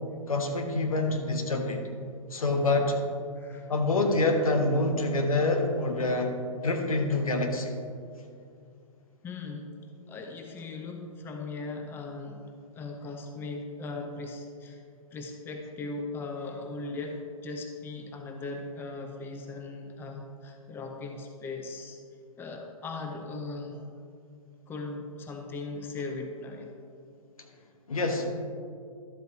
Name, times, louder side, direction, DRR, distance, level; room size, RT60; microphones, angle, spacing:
voice 1, 0.3-1.8 2.3-3.0 3.7-6.3 6.6-7.7 27.9-28.3, left 2 dB, 75° left, 4 dB, 1.2 m, -26 dB
voice 2, 3.4-3.7 9.2-9.7 10.1-14.8 15.1-22.0 22.4-23.9 24.7-26.7, left 3 dB, 10° left, 3 dB, 0.6 m, -38 dB
12.0 x 7.6 x 2.8 m, 2.3 s
figure-of-eight pair, 120°, 18 cm